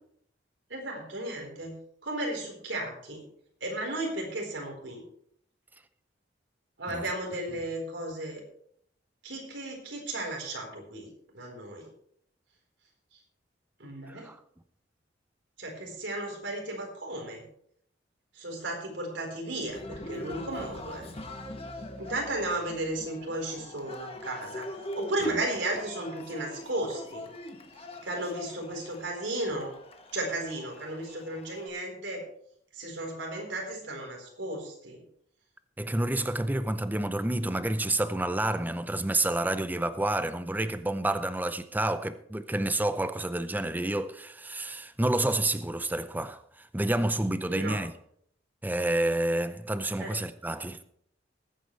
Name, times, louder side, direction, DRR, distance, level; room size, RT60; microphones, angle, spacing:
voice 1, 0.7-3.2 3.6-5.0 6.8-8.4 9.2-11.1 11.3-11.9 13.1-13.2 13.8-14.3 15.6-17.4 18.3-21.1 22.0-24.7 24.9-27.2 27.8-29.7 30.1-32.2 32.7-35.0 47.5-47.8 50.0-50.1, right 1 dB, 90° right, 4.4 m, -34 dB
Cheering, 19.7-31.7, left 1 dB, 35° left, 1.5 m, -43 dB
voice 2, 35.8-47.9 48.6-50.8, right 1 dB, 10° right, 0.6 m, -29 dB
20.5 x 9.2 x 3.3 m
head